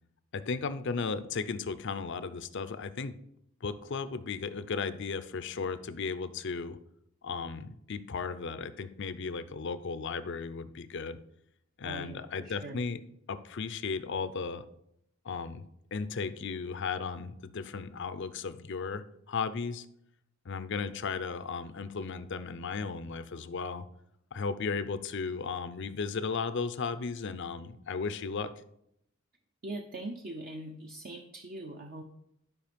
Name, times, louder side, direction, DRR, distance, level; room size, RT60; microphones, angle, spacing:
voice 1, 0.3-3.2 3.6-6.8 7.2-11.2 11.8-13.0 13.3-14.6 15.2-15.6 15.9-19.9 20.4-23.9 24.3-28.5, left 5 dB, 60° left, 13 dB, 0.6 m, -35 dB
voice 2, 11.8-12.8 29.6-32.0, right 2 dB, 45° right, 4 dB, 0.7 m, -42 dB
12.0 x 5.2 x 5.2 m, 0.77 s
head